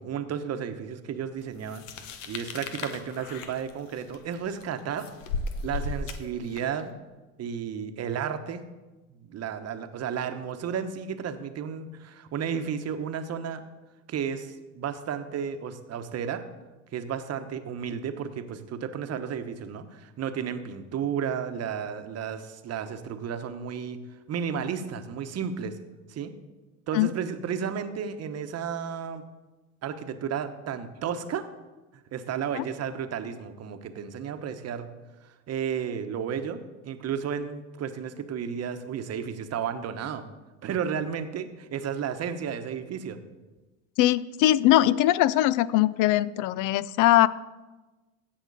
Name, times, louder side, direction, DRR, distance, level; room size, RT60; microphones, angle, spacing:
voice 1, 0.0-1.9 2.3-5.1 5.6-6.9 7.4-8.6 9.1-13.6 14.1-16.4 16.9-25.8 26.1-26.3 26.9-29.2 29.8-31.5 32.1-34.9 35.2-36.6 36.8-40.3 40.6-43.2, right 7 dB, 40° right, 9 dB, 1.0 m, -33 dB
Apple Biting and Chewing, 1.7-6.8, left 3 dB, 80° left, 1.0 m, -36 dB
voice 2, 44.0-47.3, left 14 dB, 55° left, 19 dB, 0.5 m, -21 dB
16.5 x 6.0 x 4.1 m, 1.2 s
hypercardioid pair, 85°, 38 cm